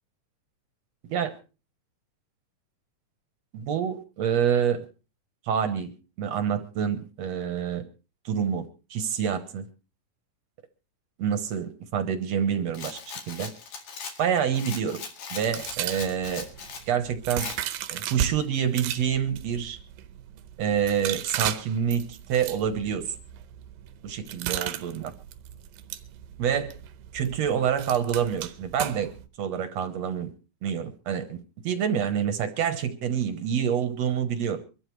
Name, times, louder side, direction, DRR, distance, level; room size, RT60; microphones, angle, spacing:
voice 1, 3.5-4.9 5.5-7.8 8.3-8.7 8.9-9.6 11.2-13.5 14.2-15.0 15.3-16.5 16.9-17.5 17.9-19.8 20.6-23.2 24.0-25.1 26.4-26.7 27.1-29.1 29.4-30.3 30.6-31.4 31.6-34.6, right 8 dB, 60° right, 10 dB, 1.9 m, -27 dB
Rattle, 12.7-16.9 17.4-17.6, left 5 dB, 70° left, 3.6 m, -39 dB
sound 1, 15.4-18.3 18.7-29.3, right 11 dB, 85° right, 2.7 m, -36 dB
24.0 x 13.0 x 3.2 m, 0.33 s
omnidirectional pair, 4.0 m